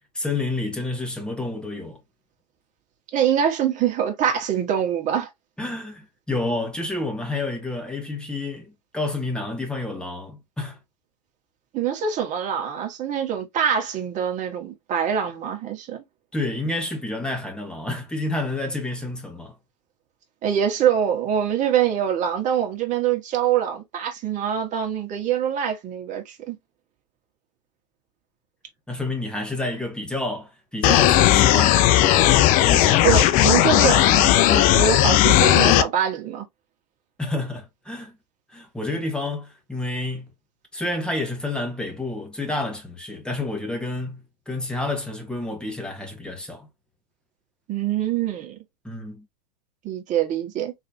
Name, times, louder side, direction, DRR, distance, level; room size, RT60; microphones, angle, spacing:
voice 1, 0.1-2.0 5.6-10.8 16.3-19.5 28.9-32.4 32.7-33.0 37.2-38.2 38.5-40.3 40.7-46.7 48.8-49.3, left 2 dB, 5° left, 1.5 m, -29 dB
voice 2, 3.1-5.3 11.7-16.0 20.4-26.6 33.0-36.5 47.7-48.6 49.8-50.7, right 9 dB, 35° right, 1.6 m, -24 dB
sound 1, 30.8-35.8, left 13 dB, 40° left, 0.5 m, -16 dB
4.2 x 3.2 x 2.8 m
hypercardioid pair, 105°, 21 cm